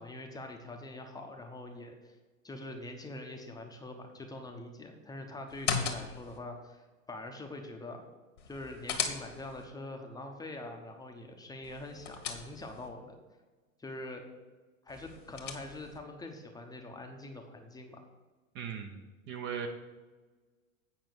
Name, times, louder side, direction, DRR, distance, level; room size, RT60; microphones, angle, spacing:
voice 1, 0.0-2.2 2.4-8.0 8.5-13.1 13.8-14.2 14.8-18.0, left 2 dB, 10° left, 3 dB, 0.8 m, -44 dB
sound 1, 5.5-6.4 8.4-9.7 11.6-12.9 14.9-16.0, left 6 dB, 60° left, 1.5 m, -37 dB
voice 2, 18.5-19.7, right 7 dB, 25° right, 4 dB, 0.8 m, -39 dB
8.6 x 5.5 x 6.9 m, 1.3 s
figure-of-eight pair, 95°, 42 cm